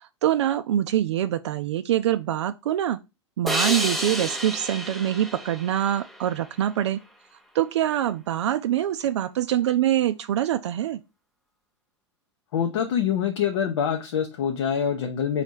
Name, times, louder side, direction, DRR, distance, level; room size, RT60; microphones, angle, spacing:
voice 1, 0.0-3.0 3.4-7.0 7.5-11.0, right 11 dB, 65° right, 0.4 m, -24 dB
sound 1, 3.5-6.8, equal, ahead, 0.6 m, -30 dB
voice 2, 12.5-15.4, left 8 dB, 60° left, 0.7 m, -25 dB
4.2 x 2.8 x 4.4 m
hypercardioid pair, 100°, 16 cm